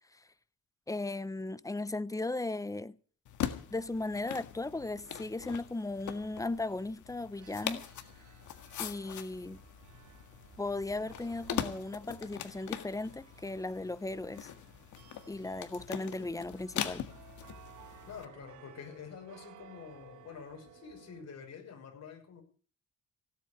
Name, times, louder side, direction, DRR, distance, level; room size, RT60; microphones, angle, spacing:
voice 1, 0.9-3.0 3.7-7.9 8.8-9.6 10.6-14.5 15.3-17.1, left 2 dB, 10° left, 0.7 m, -36 dB
sound 1, 3.2-18.2, left 10 dB, 75° left, 1.8 m, -42 dB
sound 2, 7.4-21.2, right 10 dB, 80° right, 2.7 m, -58 dB
voice 2, 18.1-22.4, left 6 dB, 60° left, 6.1 m, -47 dB
16.5 x 8.1 x 9.0 m
cardioid pair, 90°, 30 cm